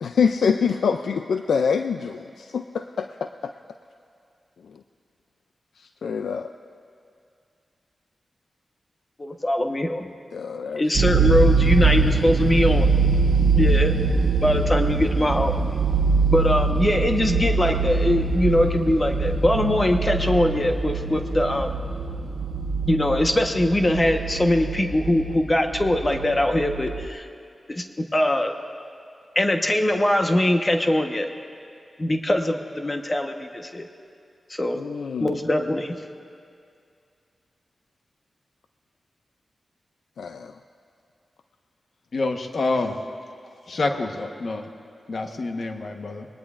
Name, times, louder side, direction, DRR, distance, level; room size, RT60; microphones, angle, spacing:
voice 1, 0.0-3.3 6.0-6.5 10.3-10.8 34.8-35.3 40.2-40.5, left 6 dB, 90° left, 7 dB, 0.3 m, -25 dB
voice 2, 9.2-10.1 10.8-12.9 13.5-14.0 14.2-15.5 16.3-21.8 22.9-27.3 27.7-28.5 29.3-31.3 32.0-33.9 34.5-34.8 35.2-35.9, left 1 dB, 30° left, 4 dB, 1.1 m, -22 dB
sound 1, 10.9-27.1, right 4 dB, 80° right, 0.5 m, -23 dB
voice 3, 42.1-43.0 43.7-44.7 45.1-46.3, left 3 dB, 65° left, 5 dB, 1.1 m, -27 dB
21.5 x 19.0 x 2.5 m, 2.3 s
cardioid pair, 50°, 0 cm